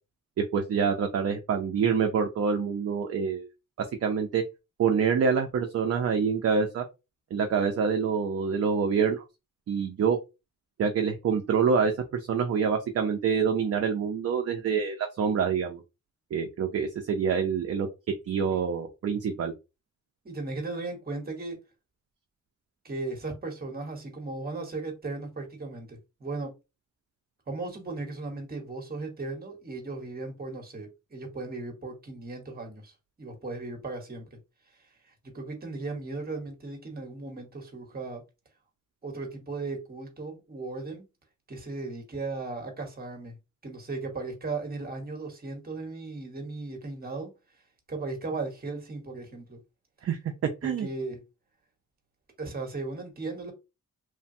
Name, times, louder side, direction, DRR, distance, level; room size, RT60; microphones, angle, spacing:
voice 1, 0.5-3.5 4.0-4.4 4.8-6.8 7.3-9.2 9.7-10.2 10.8-15.8 16.3-17.9 18.3-19.5 50.0-50.2 50.6-50.9, right 6 dB, 50° right, 0.4 m, -26 dB
voice 2, 20.2-21.6 22.8-26.5 27.5-34.3 35.2-38.2 39.0-41.0 41.5-43.4 43.6-47.3 47.9-49.6 50.6-51.2 52.4-53.5, right 3 dB, 30° right, 1.0 m, -36 dB
3.2 x 2.1 x 2.6 m
wide cardioid pair, 130°, 31 cm